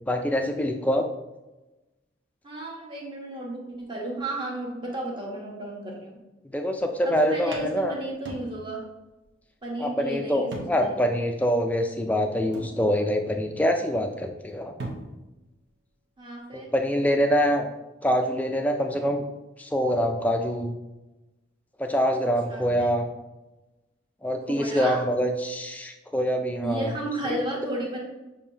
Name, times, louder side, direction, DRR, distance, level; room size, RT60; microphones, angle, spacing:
voice 1, 0.1-1.0 6.4-8.0 9.8-14.7 16.5-17.7 18.0-19.2 19.6-20.7 21.8-23.1 24.2-26.9 27.3-27.4, equal, 10° left, 4 dB, 0.3 m, -25 dB
voice 2, 2.4-6.2 7.0-8.8 9.6-11.0 16.2-16.7 22.5-22.9 24.5-25.0 26.6-28.0, right 1 dB, 25° right, -2 dB, 0.9 m, -33 dB
sound 1, 7.5-8.9 9.2-9.3 10.5-11.0 11.5-11.6 12.5-13.3 14.5-14.6 14.8-15.4, right 1 dB, 70° right, 0.9 m, -40 dB
6.7 x 2.7 x 2.7 m, 1.0 s
head